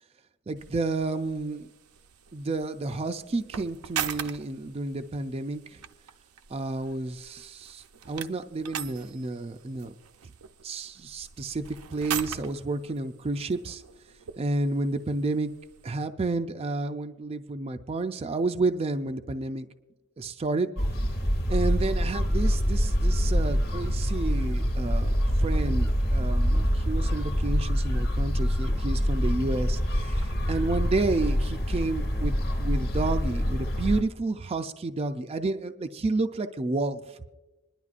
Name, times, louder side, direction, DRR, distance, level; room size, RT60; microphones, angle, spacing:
voice 1, 0.5-1.7 2.3-5.8 6.5-9.9 10.6-13.8 14.4-15.5 15.8-19.7 20.2-20.7 21.5-25.1 25.4-37.3, right 3 dB, 25° right, 7 dB, 0.4 m, -30 dB
sound 1, 0.6-16.1, right 8 dB, 80° right, 0.6 m, -41 dB
sound 2, 20.8-34.0, equal, 45° left, 1.3 m, -25 dB
26.5 x 11.0 x 2.4 m, 1.1 s
head